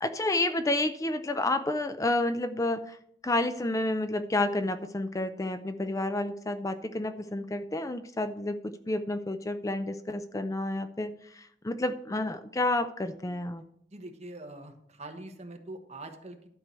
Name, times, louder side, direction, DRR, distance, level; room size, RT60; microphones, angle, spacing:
voice 1, 0.0-3.0 3.2-13.6, left 2 dB, 20° left, 10 dB, 0.4 m, -30 dB
voice 2, 13.9-16.5, right 2 dB, 40° right, 4 dB, 1.3 m, -43 dB
12.0 x 4.7 x 6.8 m, 0.70 s
head